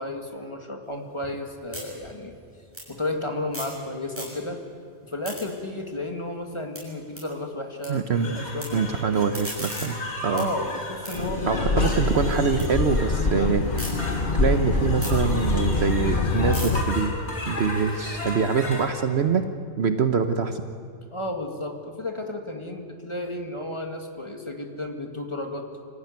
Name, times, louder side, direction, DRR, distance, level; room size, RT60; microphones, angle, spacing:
voice 1, 0.0-2.3 2.9-4.6 5.0-9.4 10.3-11.9 21.1-25.7, left 1 dB, 25° left, 3 dB, 2.1 m, -33 dB
sound 1, 0.8-3.8 4.1-4.7 5.0-7.9 8.2-8.7 9.1-12.7 13.1-13.9 14.4-18.5, equal, 10° right, 7.3 m, -41 dB
voice 2, 7.9-8.4 8.7-10.5 11.5-13.6 14.3-17.1 17.5-19.5 19.8-20.6, right 5 dB, 60° right, 8 dB, 1.1 m, -24 dB
sound 2, 8.1-18.9, left 1 dB, 60° left, 4.6 m, -36 dB
sound 3, 11.1-16.8, left 3 dB, 45° left, 1.3 m, -25 dB
25.5 x 15.0 x 9.5 m, 2.4 s
omnidirectional pair, 1.3 m